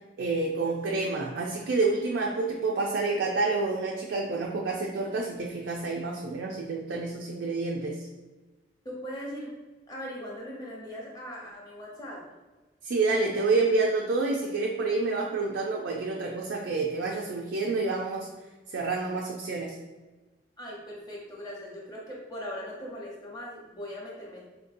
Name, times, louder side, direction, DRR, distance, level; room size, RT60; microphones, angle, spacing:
voice 1, 0.2-8.1 12.8-18.3 18.7-19.8, right 3 dB, 80° right, -1 dB, 0.4 m, -28 dB
voice 2, 8.8-9.5 9.9-12.2 20.6-24.4, equal, 20° left, -3 dB, 0.8 m, -39 dB
4.5 x 2.6 x 2.5 m, 1.2 s
head